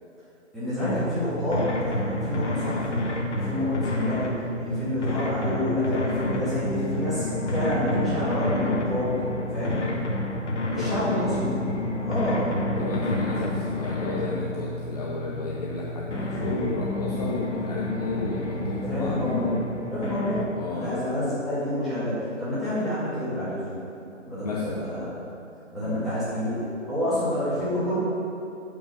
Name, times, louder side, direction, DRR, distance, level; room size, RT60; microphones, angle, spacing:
voice 1, 0.5-9.2 9.5-9.9 10.7-11.6 12.0-12.6 18.8-23.8 24.3-25.1 25.7-28.0, left 1 dB, ahead, -14 dB, 2.1 m, -28 dB
sound 1, 0.8-20.5, left 1 dB, 65° left, 1.5 m, -29 dB
voice 2, 2.2-2.5 4.6-4.9 9.6-10.0 10.7-11.5 12.7-19.4 20.6-21.3 24.4-24.9 25.8-26.1, left 3 dB, 30° left, -4 dB, 0.7 m, -33 dB
9.0 x 5.4 x 5.9 m, 2.7 s
figure-of-eight pair, 150°, 38 cm